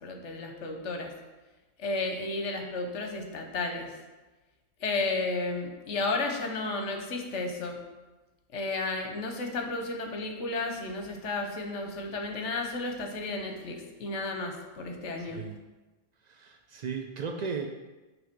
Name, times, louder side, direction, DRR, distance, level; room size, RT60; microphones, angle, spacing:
voice 1, 0.0-1.1 1.8-3.9 4.8-7.8 8.5-15.4, left 3 dB, 70° left, 4 dB, 1.2 m, -33 dB
voice 2, 15.2-15.6 16.2-17.7, right 5 dB, 80° right, 3 dB, 0.3 m, -36 dB
6.9 x 3.3 x 6.0 m, 1.2 s
omnidirectional pair, 1.3 m